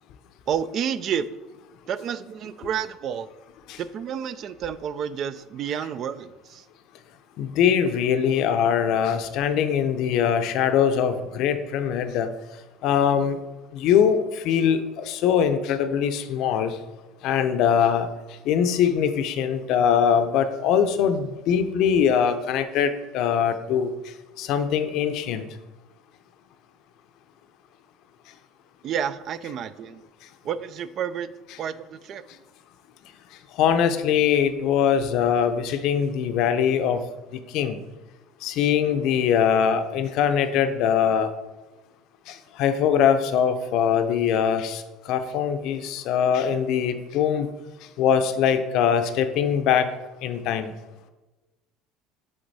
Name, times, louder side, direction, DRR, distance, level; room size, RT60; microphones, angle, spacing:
voice 1, 0.5-1.4 1.9-3.3 3.8-6.7 28.8-30.0 30.4-31.3 31.6-32.4, right 8 dB, 50° right, 15 dB, 0.4 m, -30 dB
voice 2, 7.4-12.3 12.8-13.4 13.7-16.7 17.2-18.1 18.5-23.9 24.4-25.5 33.6-37.0 37.5-37.8 38.4-41.3 42.6-47.5 48.0-49.9 50.2-50.7, left 8 dB, 65° left, 9 dB, 0.6 m, -22 dB
7.8 x 3.5 x 4.1 m, 1.1 s
supercardioid pair, 105°, 0 cm